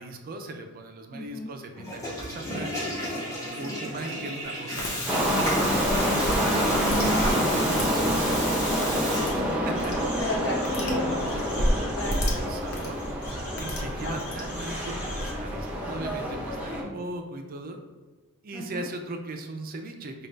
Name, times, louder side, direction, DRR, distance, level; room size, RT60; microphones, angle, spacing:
voice 1, 0.0-2.7 3.2-5.3 6.7-9.9 11.5-13.0 13.5-17.8 18.4-20.3, right 2 dB, 45° right, 4 dB, 0.4 m, -39 dB
voice 2, 1.1-1.5 3.6-3.9 6.4-7.3 7.8-7.9 8.9-9.3 10.0-11.3 12.0-12.5 14.0-14.2 16.8-17.0 18.5-18.9, left 1 dB, 60° left, -3 dB, 1.2 m, -35 dB
Water tap faucet / Toilet flush, 1.7-9.8, equal, 15° left, 1.1 m, -32 dB
sound 1, 4.8-4.9 5.4-15.3, equal, 85° left, 0.9 m, -33 dB
sound 2, 5.1-16.8, equal, 5° right, 0.7 m, -27 dB
5.1 x 2.3 x 3.3 m, 1.4 s
head